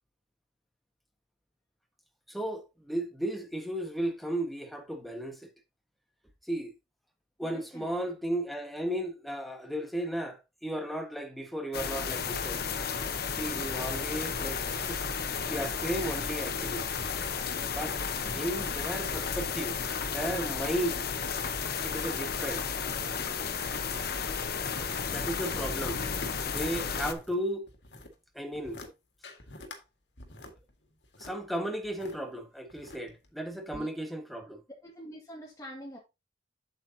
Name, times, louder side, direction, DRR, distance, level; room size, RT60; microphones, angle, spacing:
voice 1, 2.3-5.5 6.4-6.7 7.4-12.6 13.4-16.9 17.3-17.4 17.7-18.0 18.3-19.8 20.0-21.0 21.8-22.6 25.0-26.0 26.5-27.7 28.3-28.8 31.2-34.6, right 1 dB, ahead, 1.5 m, -35 dB
voice 2, 7.4-8.2 18.2-18.6 33.7-33.9 34.8-36.0, equal, 20° left, 2.2 m, -46 dB
sound 1, 11.7-27.1, left 6 dB, 60° left, 1.0 m, -33 dB
sound 2, 26.0-27.4 27.7-28.1 28.5-28.9 29.2-29.8 30.2-32.2 32.7-33.3 33.7-33.8, left 1 dB, 75° left, 1.9 m, -47 dB
8.0 x 7.9 x 2.8 m
head